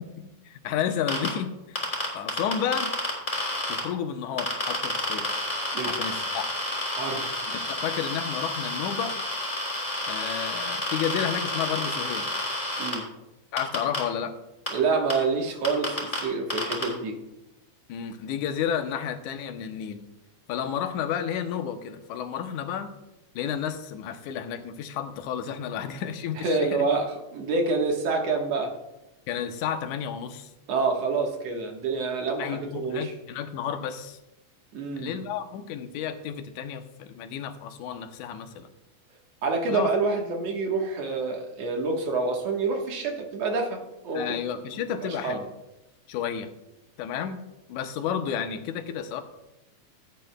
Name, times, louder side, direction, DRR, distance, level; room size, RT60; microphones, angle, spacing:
voice 1, 0.2-1.9 2.1-2.9 3.7-5.3 5.9-6.5 7.5-9.1 10.1-12.3 13.5-14.4 17.9-20.0 20.5-22.9 23.4-26.9 29.3-30.5 32.4-34.2 35.0-38.7 39.7-39.9 44.1-45.5 46.1-46.5 47.0-47.4 47.7-49.2, left 8 dB, 90° left, 7 dB, 2.2 m, -31 dB
sound 1, 1.1-1.3 1.8-3.8 4.4-12.9 13.6-14.0 14.7-14.8 15.1-15.2 15.6-16.2 16.5-16.8, left 2 dB, 15° left, 2.8 m, -29 dB
voice 2, 6.9-7.3 12.8-13.1 14.7-17.2 26.3-28.7 30.7-33.1 34.7-35.2 39.4-44.4 45.0-45.4, right 4 dB, 65° right, 1 dB, 2.3 m, -27 dB
16.0 x 9.2 x 2.2 m, 0.93 s
omnidirectional pair, 3.4 m